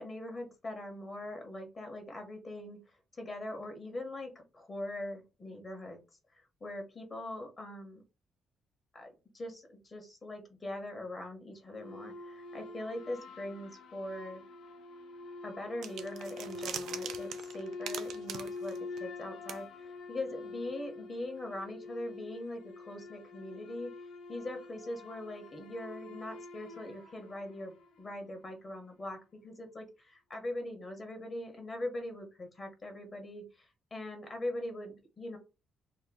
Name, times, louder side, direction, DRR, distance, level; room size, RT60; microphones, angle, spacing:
voice 1, 0.0-6.0 6.3-8.0 8.9-14.4 15.4-23.9 24.3-35.4, left 1 dB, 35° left, 3 dB, 1.1 m, -42 dB
sound 1, 11.7-28.3, left 3 dB, 80° left, 0.6 m, -45 dB
sound 2, 15.8-19.2 19.5-19.6, right 9 dB, 75° right, 0.4 m, -42 dB
2.9 x 2.1 x 3.6 m, 0.29 s
cardioid pair, 90°, 0 cm